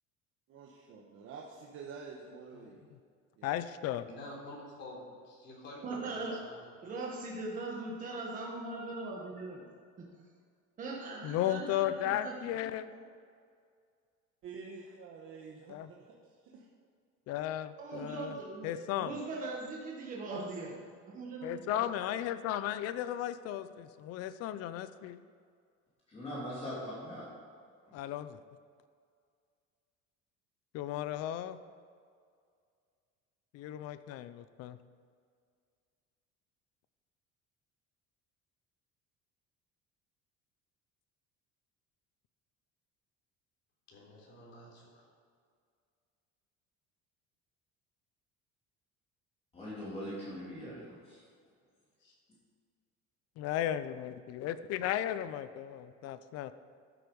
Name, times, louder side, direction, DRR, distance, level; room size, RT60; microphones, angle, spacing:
voice 1, 0.5-3.0 3.4-3.5 14.4-16.1 16.4-16.7, right 5 dB, 45° right, -3 dB, 1.2 m, -48 dB
voice 2, 3.4-4.1 11.2-12.9 15.7-15.9 17.3-18.4 18.6-19.1 21.4-25.2 27.9-28.4 30.7-31.6 33.5-34.8 53.4-56.5, left 12 dB, 55° left, 13 dB, 0.6 m, -35 dB
voice 3, 4.2-6.7 43.9-45.0 52.0-52.1, left 1 dB, 35° left, -3 dB, 3.5 m, -49 dB
voice 4, 5.8-6.4 6.8-9.6 10.8-12.3 12.6-13.0 17.8-20.8 21.1-21.8, right 3 dB, 25° right, -3 dB, 1.3 m, -40 dB
voice 5, 26.1-27.3 49.5-51.2, equal, 20° left, -8 dB, 3.3 m, -41 dB
13.0 x 7.9 x 5.4 m, 2.1 s
cardioid pair, 175°, 30 cm